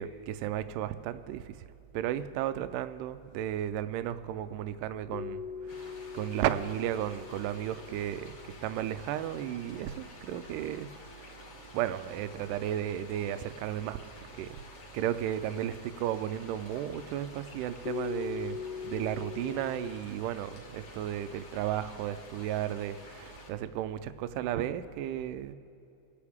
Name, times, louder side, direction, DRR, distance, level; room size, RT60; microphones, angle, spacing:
voice 1, 0.0-1.5 1.9-5.4 5.8-8.4 8.6-10.9 11.7-14.0 14.4-14.6 14.9-18.6 18.8-25.5, right 11 dB, 85° right, 12 dB, 1.9 m, -34 dB
sound 1, 5.1-9.2 17.9-20.0, left 7 dB, 80° left, 2.0 m, -41 dB
sound 2, 5.7-23.5, left 2 dB, 50° left, 2.8 m, -50 dB
28.5 x 9.8 x 3.6 m, 2.6 s
omnidirectional pair, 4.3 m